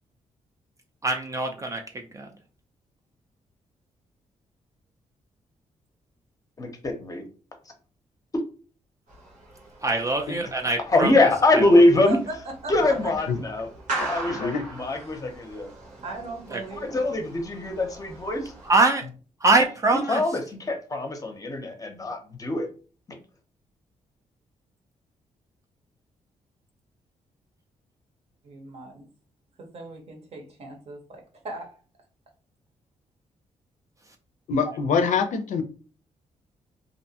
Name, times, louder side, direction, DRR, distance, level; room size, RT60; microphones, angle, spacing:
voice 1, 1.0-1.8 2.1-2.3 9.8-11.1 16.5-16.6 18.7-19.0 19.4-20.2, right 3 dB, 25° right, 3 dB, 0.3 m, -22 dB
voice 2, 6.6-7.3 8.3-8.4 10.9-12.2 12.7-13.7 14.0-15.7 16.8-18.5 19.9-22.7 23.1-23.2, left 2 dB, 25° left, 4 dB, 0.6 m, -23 dB
sound 1, 9.1-18.7, right 2 dB, 80° right, 1.2 m, -39 dB
voice 3, 11.8-12.3 12.6-13.1 15.1-15.2 16.0-17.2 28.4-29.1 29.6-31.8, right 3 dB, 55° right, 2 dB, 0.8 m, -38 dB
voice 4, 14.0-14.7 34.5-35.6, left 5 dB, 70° left, 7 dB, 0.4 m, -25 dB
2.6 x 2.2 x 2.7 m, 0.37 s
cardioid pair, 125°, 13 cm